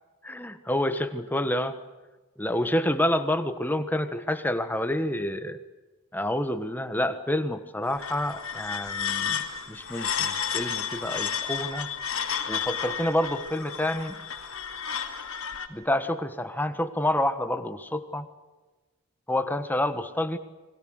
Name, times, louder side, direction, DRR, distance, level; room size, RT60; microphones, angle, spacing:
voice 1, 0.2-1.8 2.4-5.6 6.1-11.9 12.5-14.2 15.7-18.3 19.3-20.4, left 1 dB, 10° left, 9 dB, 1.3 m, -28 dB
sound 1, 7.8-15.7, left 7 dB, 70° left, 2.6 m, -32 dB
29.5 x 22.5 x 6.6 m, 1.2 s
head